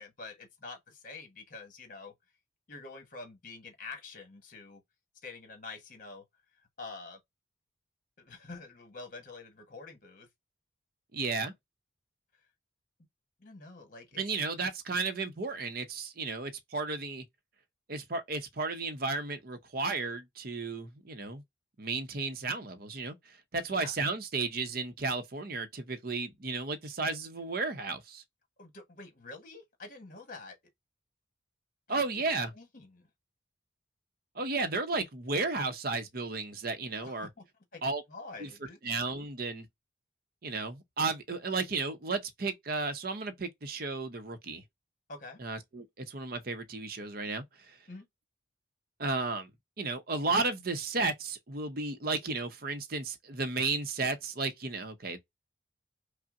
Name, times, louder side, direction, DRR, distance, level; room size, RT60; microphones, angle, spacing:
voice 1, 0.0-2.1 2.7-4.8 5.2-6.2 6.8-7.2 8.2-10.3 13.4-14.2 23.7-23.9 28.6-30.6 31.9-32.0 32.5-33.1 37.0-37.4 37.7-38.8 45.1-45.4 47.9-48.1, left 3 dB, 45° left, 1.2 m, -47 dB
voice 2, 11.1-11.5 14.2-17.2 17.9-21.4 21.8-28.2 31.9-32.5 34.3-37.3 37.8-38.0 38.4-38.5 38.8-39.7 40.4-44.6 45.4-47.8 49.0-49.5 49.8-55.2, right 3 dB, 50° right, 0.7 m, -33 dB
5.4 x 2.0 x 2.5 m
head